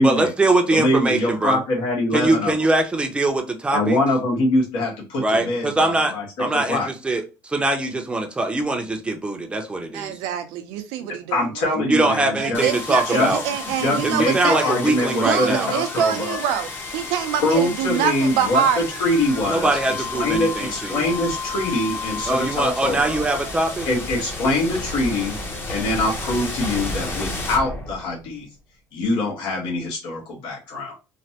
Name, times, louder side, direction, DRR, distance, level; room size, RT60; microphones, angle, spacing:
voice 1, 0.0-1.6 2.1-4.0 5.2-6.1 6.4-10.1 11.7-13.4 14.0-15.7 19.4-21.0 22.3-23.9, right 2 dB, 15° right, 0.6 m, -22 dB
voice 2, 0.7-2.5 3.7-6.9 11.3-12.6 13.0-13.3 13.6-16.4 17.4-19.8 20.1-23.2 23.8-25.4 25.7-28.5 28.9-30.9, left 1 dB, 75° left, 1.3 m, -23 dB
voice 3, 9.9-11.8 12.4-14.8 15.2-18.8, right 9 dB, 85° right, 0.6 m, -25 dB
sound 1, 12.5-28.4, left 3 dB, 25° left, 0.8 m, -32 dB
3.2 x 2.1 x 2.8 m
cardioid pair, 120°, 8 cm